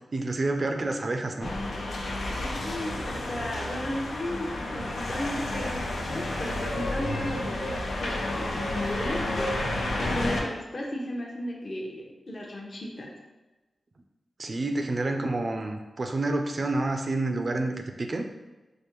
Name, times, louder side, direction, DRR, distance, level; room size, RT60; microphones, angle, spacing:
voice 1, 0.1-1.6 14.4-18.2, right 2 dB, 45° right, 4 dB, 0.4 m, -29 dB
sound 1, 1.4-10.4, left 1 dB, 90° left, 0.6 m, -31 dB
voice 2, 2.3-9.5 10.0-13.1 14.8-14.9, left 1 dB, 45° left, -2 dB, 0.8 m, -35 dB
4.9 x 2.1 x 3.0 m, 1.1 s
wide cardioid pair, 100°, 0 cm